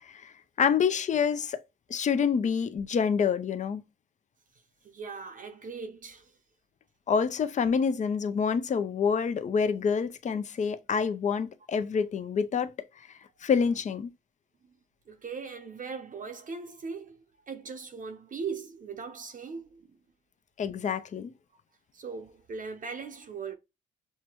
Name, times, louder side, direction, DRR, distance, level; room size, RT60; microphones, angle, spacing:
voice 1, 0.0-1.6 1.9-3.8 7.1-12.7 13.4-14.1 20.6-21.3, left 6 dB, 40° left, 0.5 m, -27 dB
voice 2, 4.8-6.4 14.6-14.7 15.1-20.0 21.9-23.5, right 5 dB, 40° right, 0.7 m, -39 dB
5.7 x 2.2 x 3.0 m
cardioid pair, 90°, 20 cm